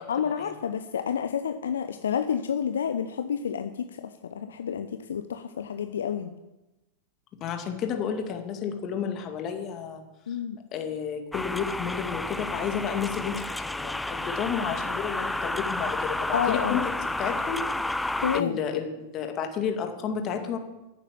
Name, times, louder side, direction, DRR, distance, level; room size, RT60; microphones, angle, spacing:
voice 1, 0.1-6.3 10.3-10.6 16.3-16.8 18.2-18.6, left 8 dB, 65° left, 9 dB, 0.8 m, -29 dB
voice 2, 7.4-10.0 10.7-16.9 17.2-17.6 18.3-20.6, left 7 dB, 35° left, 5 dB, 2.2 m, -31 dB
sound 1, 11.3-18.4, left 2 dB, 5° left, 0.4 m, -31 dB
14.0 x 8.4 x 7.2 m, 1.0 s
figure-of-eight pair, 90°, 0 cm